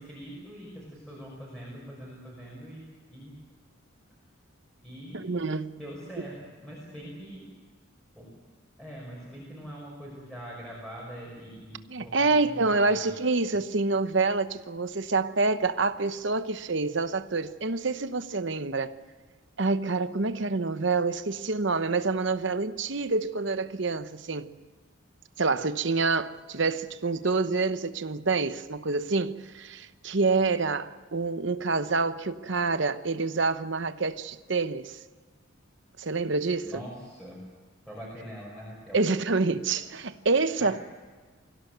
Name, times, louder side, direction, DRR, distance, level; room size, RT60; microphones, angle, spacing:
voice 1, 0.0-3.4 4.8-5.3 5.8-6.4 6.6-7.5 8.2-8.3 8.8-13.1 13.4-13.6 14.1-14.2 36.6-37.4 37.9-39.0 39.8-40.0 40.6-40.8, equal, ahead, 5.7 m, -43 dB
voice 2, 5.1-5.8 11.9-18.9 19.6-24.5 25.4-35.0 36.0-36.7 38.9-40.8, right 3 dB, 60° right, 0.9 m, -27 dB
24.5 x 16.5 x 8.0 m
head